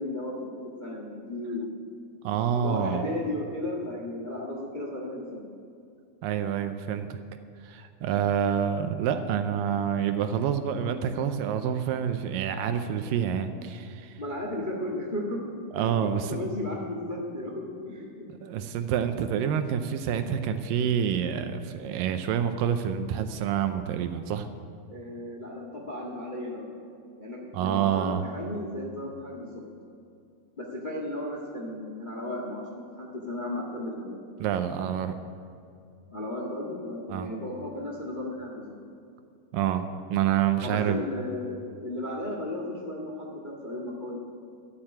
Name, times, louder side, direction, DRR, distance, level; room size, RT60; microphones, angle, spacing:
voice 1, 0.0-1.7 2.6-5.4 14.2-18.2 24.9-26.7 27.2-29.6 30.6-34.2 36.1-38.7 40.6-44.2, left 1 dB, 80° left, -1 dB, 0.4 m, -35 dB
voice 2, 2.2-3.1 6.2-7.2 7.6-14.2 15.7-16.4 18.4-24.5 27.5-28.2 34.4-35.2 37.1-37.3 39.5-41.0, right 8 dB, 80° right, 9 dB, 2.2 m, -27 dB
12.5 x 8.8 x 8.7 m, 2.4 s
omnidirectional pair, 4.3 m